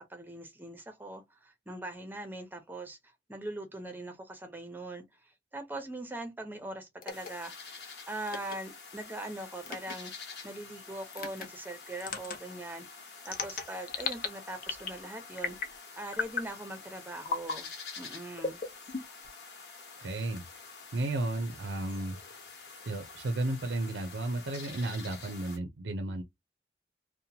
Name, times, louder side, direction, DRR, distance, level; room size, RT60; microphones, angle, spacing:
voice 1, 0.0-7.8 8.1-12.9 13.2-18.6, right 1 dB, 10° right, 0.6 m, -42 dB
sound 1, 7.0-7.3 8.3-8.6 9.6-9.9 11.1-11.5 12.0-12.4 13.2-14.3 14.6-15.0 15.4-15.8 16.1-16.5 17.2-17.6 18.4-19.3, left 4 dB, 50° left, 0.6 m, -35 dB
sound 2, 7.1-25.6, left 4 dB, 70° left, 1.1 m, -48 dB
voice 2, 20.0-20.4 20.9-22.2 22.8-26.2, right 2 dB, 80° right, 0.5 m, -33 dB
2.9 x 2.1 x 2.7 m
head